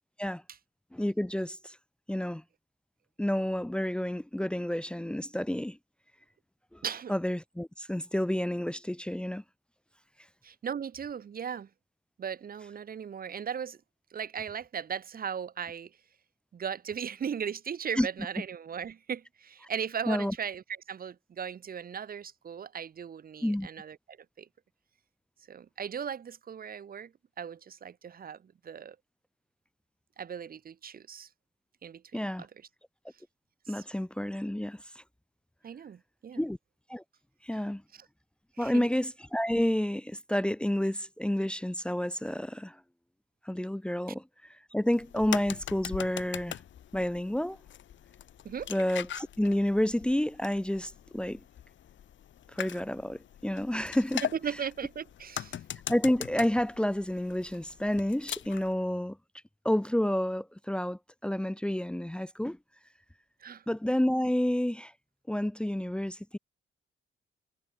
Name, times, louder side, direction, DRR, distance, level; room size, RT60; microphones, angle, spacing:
voice 1, 0.9-1.8 2.1-2.4 3.2-5.8 6.7-6.8 7.1-9.4 18.0-18.1 20.1-20.3 23.4-23.7 32.1-32.4 33.7-35.0 36.3-36.6 36.9-37.0 37.4-37.8 38.6-42.8 43.4-46.6 46.9-47.6 48.7-51.4 52.5-54.3 55.9-59.2 59.6-62.6 63.7-64.9 65.3-66.4, left 1 dB, 5° left, 1.1 m, -30 dB
voice 2, 6.8-7.1 10.4-11.7 12.2-13.8 14.1-15.9 16.5-24.5 25.5-29.0 30.2-31.3 31.8-32.5 33.7-33.8 35.6-36.4 38.6-38.9 48.4-48.7 54.3-55.6 63.4-63.6, right 7 dB, 45° right, 1.5 m, -37 dB
sound 1, 44.9-58.7, left 10 dB, 65° left, 2.2 m, -41 dB
cardioid pair, 115°, 21 cm